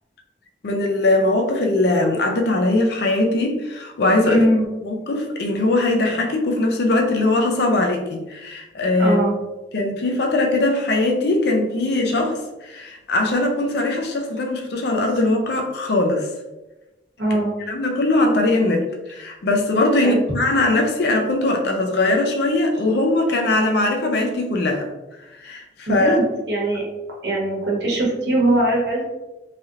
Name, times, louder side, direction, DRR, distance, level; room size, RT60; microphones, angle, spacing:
voice 1, 0.6-4.5 4.8-9.2 9.7-16.3 17.7-24.9 25.4-26.2, left 2 dB, 65° left, 2 dB, 0.5 m, -20 dB
voice 2, 4.2-4.6 9.0-9.3 17.2-17.5 20.0-20.2 25.9-26.8 27.2-29.1, right 1 dB, 70° right, -3 dB, 1.0 m, -21 dB
3.3 x 2.8 x 2.4 m, 1.0 s
head